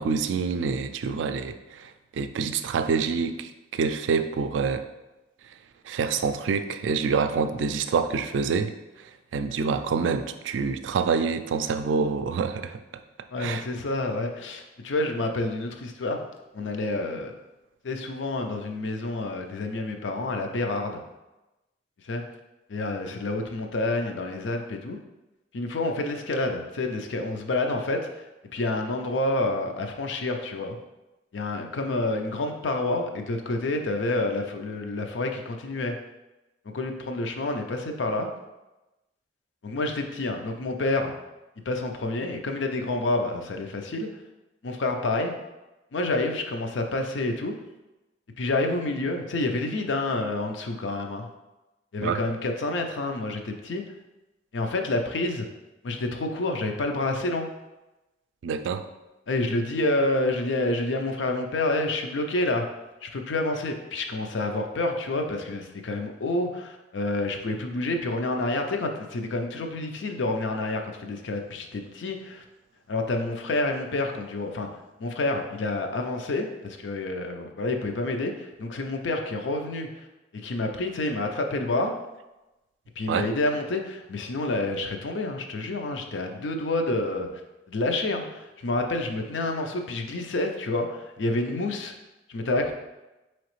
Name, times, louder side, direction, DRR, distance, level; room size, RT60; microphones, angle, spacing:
voice 1, 0.0-1.9 2.2-4.8 5.9-8.7 9.3-12.8 13.4-13.6 52.0-52.2 58.4-58.8 83.1-83.3, right 5 dB, 85° right, 9 dB, 0.3 m, -26 dB
voice 2, 13.3-16.3 16.5-17.3 17.8-21.0 22.0-22.2 22.7-25.0 25.5-28.0 28.5-30.8 31.3-35.9 36.7-38.3 39.6-41.1 41.7-44.1 44.6-45.3 45.9-47.5 48.4-51.3 51.9-53.8 54.5-55.5 55.8-57.5 59.3-62.6 63.0-72.4 72.9-74.7 75.0-79.9 80.4-81.9 83.0-87.3 87.7-91.9 92.3-92.7, left 2 dB, 80° left, 4 dB, 0.5 m, -28 dB
4.8 x 3.1 x 3.1 m, 1.0 s
head